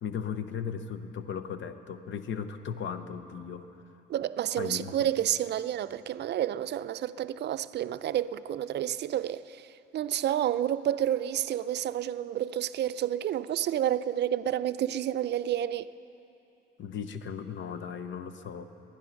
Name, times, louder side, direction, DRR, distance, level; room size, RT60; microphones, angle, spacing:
voice 1, 0.0-3.7 4.6-4.9 16.8-18.7, left 7 dB, 70° left, 0.8 m, -36 dB
voice 2, 4.1-9.6 9.9-15.9, right 11 dB, 60° right, 0.4 m, -30 dB
19.5 x 10.5 x 5.8 m
cardioid pair, 90°, 20 cm